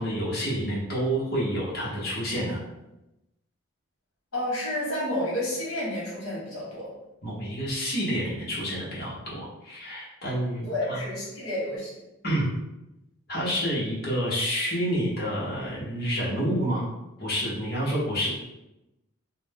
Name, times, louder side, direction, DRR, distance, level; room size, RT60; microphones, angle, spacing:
voice 1, 0.0-2.6 7.2-11.0 12.2-12.5 13.3-16.8 17.2-18.3, equal, 45° left, -6 dB, 0.9 m, -28 dB
voice 2, 4.3-6.9 10.6-11.9, left 1 dB, 70° left, -6 dB, 1.2 m, -30 dB
2.6 x 2.1 x 3.3 m, 0.94 s
head